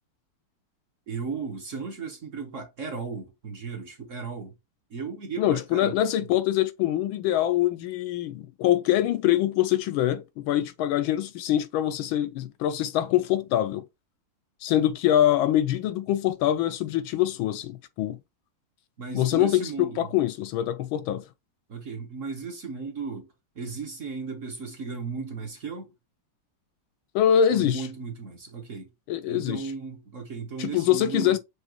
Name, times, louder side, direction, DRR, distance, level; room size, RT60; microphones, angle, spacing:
voice 1, 1.1-4.5 4.9-5.9 6.2-6.3 19.0-20.0 21.7-23.3 23.5-25.9 27.5-28.9 29.3-31.4, right 4 dB, 50° right, 1.0 m, -35 dB
voice 2, 5.4-13.8 14.6-18.2 19.1-21.2 27.1-27.9 29.1-29.6 30.6-31.4, left 11 dB, 75° left, 1.3 m, -24 dB
6.3 x 2.8 x 2.9 m
omnidirectional pair, 2.4 m